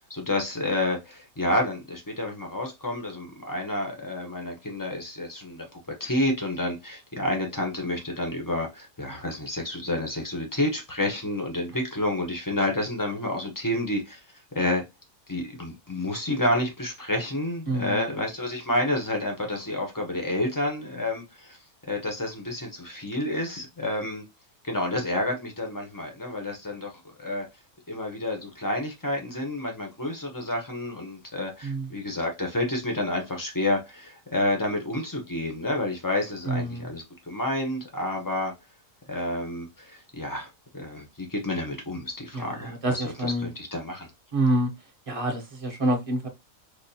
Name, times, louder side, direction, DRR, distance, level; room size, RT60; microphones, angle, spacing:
voice 1, 0.1-14.2 14.5-14.8 15.3-21.6 21.9-24.2 24.6-26.9 27.2-27.5 27.9-38.5 39.1-40.5 40.7-44.1, left 1 dB, 30° left, 0.4 m, -29 dB
voice 2, 17.7-18.1 31.6-31.9 36.5-36.9 42.3-43.5 44.3-44.7 45.1-46.3, right 1 dB, 35° right, 0.6 m, -27 dB
5.0 x 2.2 x 2.7 m
omnidirectional pair, 1.7 m